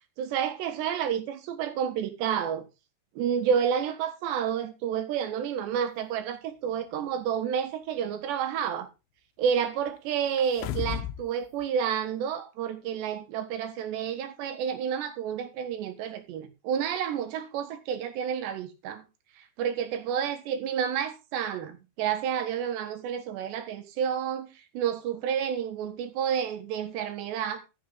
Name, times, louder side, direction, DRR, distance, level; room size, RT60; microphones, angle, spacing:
voice 1, 0.2-2.7 3.2-8.9 9.4-19.1 19.4-27.6, right 8 dB, 80° right, 3.7 m, -30 dB
sound 1, 10.4-11.3 11.6-11.7, left 11 dB, 90° left, 3.2 m, -33 dB
14.5 x 7.5 x 3.8 m
omnidirectional pair, 5.0 m